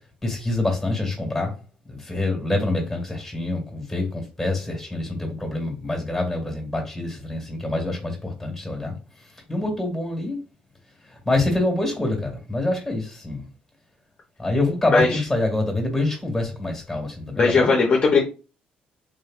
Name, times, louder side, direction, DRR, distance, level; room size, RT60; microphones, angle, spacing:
voice 1, 0.2-1.6 1.9-9.0 9.3-10.4 11.1-13.5 14.4-17.7, left 2 dB, ahead, 1.9 m, -26 dB
voice 2, 17.4-18.2, left 4 dB, 35° left, 0.8 m, -18 dB
3.6 x 3.1 x 2.5 m
cardioid pair, 130°, 3 cm